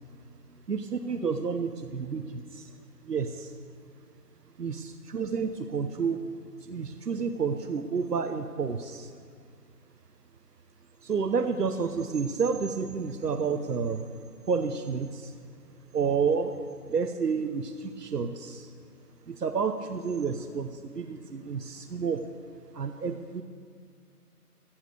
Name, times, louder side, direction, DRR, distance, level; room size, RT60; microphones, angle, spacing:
voice 1, 0.7-2.7 3.0-3.5 4.6-6.2 6.6-9.1 11.0-14.0 14.5-15.3 15.9-16.5 16.9-18.7 19.3-20.7 20.9-22.2 22.7-23.4, right 5 dB, 85° right, 8 dB, 1.0 m, -30 dB
14.5 x 8.8 x 6.5 m, 2.2 s
figure-of-eight pair, 175°, 46 cm